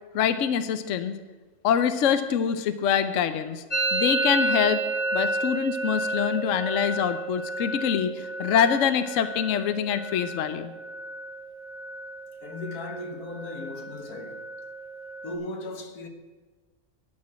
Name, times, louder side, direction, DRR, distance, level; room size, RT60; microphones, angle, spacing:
voice 1, 0.1-1.2 1.6-3.6 3.9-4.8 5.1-10.7, left 8 dB, 65° left, 1.0 m, -25 dB
Musical instrument, 3.7-11.4 11.6-12.2 12.4-13.0 13.3-15.3, right 2 dB, 30° left, 1.3 m, -31 dB
voice 2, 12.4-14.4 15.2-16.1, left 2 dB, 85° left, 1.7 m, -37 dB
11.5 x 6.2 x 8.6 m
omnidirectional pair, 1.6 m